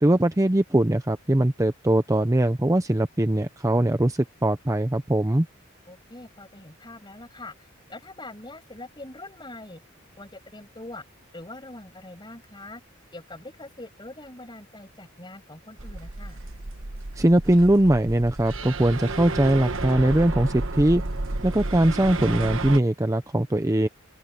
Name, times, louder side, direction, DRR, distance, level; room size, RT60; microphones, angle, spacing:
voice 1, 0.0-5.5 17.2-21.0 21.4-23.9, right 1 dB, 15° right, 0.7 m, -21 dB
voice 2, 5.9-7.5 7.9-9.8 10.2-11.0 11.3-12.8 13.1-16.4, left 2 dB, 20° left, 7.6 m, -43 dB
sound 1, 15.8-22.8, right 2 dB, 70° right, 1.3 m, -32 dB
open air
head